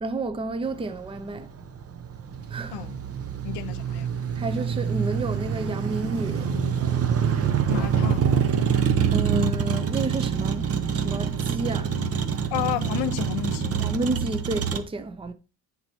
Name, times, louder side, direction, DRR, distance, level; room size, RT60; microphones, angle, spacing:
voice 1, 0.0-1.5 2.5-2.8 4.4-6.5 9.1-12.0 13.8-15.3, right 2 dB, 15° right, 0.7 m, -30 dB
Motor vehicle (road), 0.7-14.8, right 7 dB, 35° right, 0.9 m, -26 dB
voice 2, 3.4-4.1 7.7-8.3 12.5-13.8, left 13 dB, 75° left, 0.9 m, -31 dB
9.3 x 4.2 x 4.4 m
cardioid pair, 120°, 41 cm